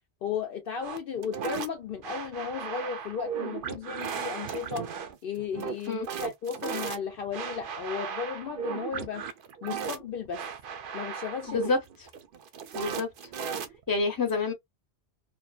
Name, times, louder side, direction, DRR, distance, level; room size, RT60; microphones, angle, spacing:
voice 1, 0.2-4.9 5.2-9.2 9.6-10.4 10.9-11.7, left 7 dB, 65° left, 0.7 m, -35 dB
sound 1, 0.8-14.0, right 7 dB, 60° right, 0.6 m, -36 dB
voice 2, 11.5-11.8 12.7-13.1 13.9-14.5, left 3 dB, 20° left, 0.8 m, -27 dB
2.7 x 2.1 x 2.3 m
omnidirectional pair, 1.1 m